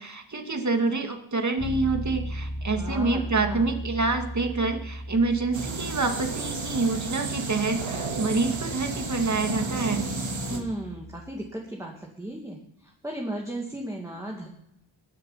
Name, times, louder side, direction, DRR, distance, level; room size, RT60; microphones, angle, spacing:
voice 1, 0.0-10.0, right 3 dB, 35° right, 5 dB, 2.2 m, -27 dB
Bass guitar, 1.6-11.4, equal, 55° left, 2.7 m, -38 dB
voice 2, 2.7-3.7 10.4-14.5, right 1 dB, 5° right, -1 dB, 2.3 m, -35 dB
sound 1, 5.5-10.6, right 3 dB, 70° right, 2.7 m, -32 dB
21.0 x 7.6 x 5.7 m, 0.78 s
wide cardioid pair, 85°, 48 cm